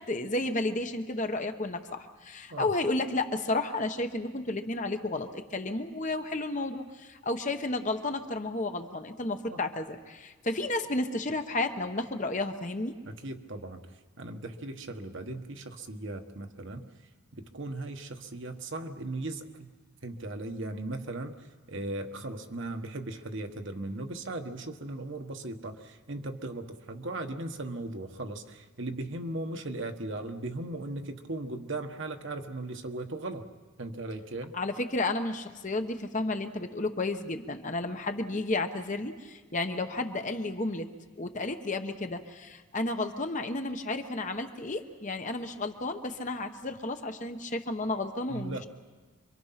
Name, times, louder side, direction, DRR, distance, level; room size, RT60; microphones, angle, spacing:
voice 1, 0.0-12.9 34.5-48.7, left 2 dB, 35° left, 7 dB, 1.0 m, -32 dB
voice 2, 13.0-13.8 14.2-16.9 17.3-19.7 20.0-33.5 33.8-34.5 48.3-48.7, right 2 dB, 55° right, 5 dB, 1.3 m, -37 dB
26.5 x 23.5 x 5.8 m, 1.4 s
head